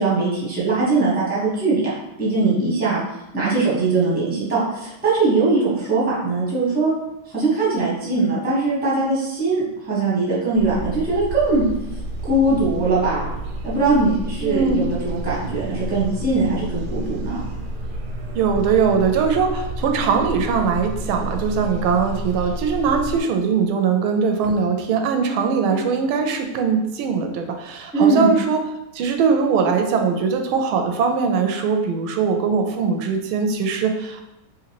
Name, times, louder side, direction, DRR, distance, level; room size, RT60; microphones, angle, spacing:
voice 1, 0.0-3.0 3.3-6.9 7.3-11.6 12.2-13.3 13.6-17.5 27.9-28.3, right 3 dB, 5° right, -7 dB, 0.8 m, -21 dB
sound 1, 10.5-23.2, right 1 dB, 70° right, 1.0 m, -30 dB
voice 2, 14.4-14.8 18.3-28.6 28.9-34.2, right 5 dB, 90° right, 4 dB, 1.4 m, -21 dB
3.8 x 3.1 x 2.9 m, 0.88 s
omnidirectional pair, 2.2 m